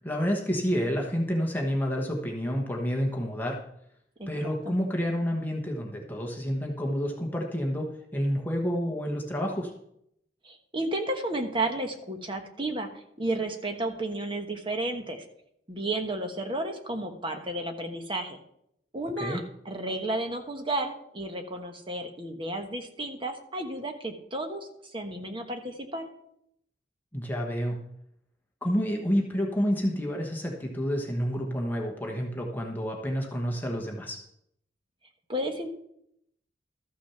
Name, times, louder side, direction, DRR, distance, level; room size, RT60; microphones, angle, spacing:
voice 1, 0.0-3.6 4.3-9.7 19.2-19.4 27.1-27.8 28.6-34.2, equal, 10° left, 0 dB, 1.2 m, -29 dB
voice 2, 4.2-4.7 10.4-12.9 13.2-15.2 15.7-18.4 18.9-26.1 35.3-35.7, right 1 dB, 30° right, 4 dB, 1.2 m, -32 dB
13.5 x 6.2 x 5.7 m, 0.75 s
head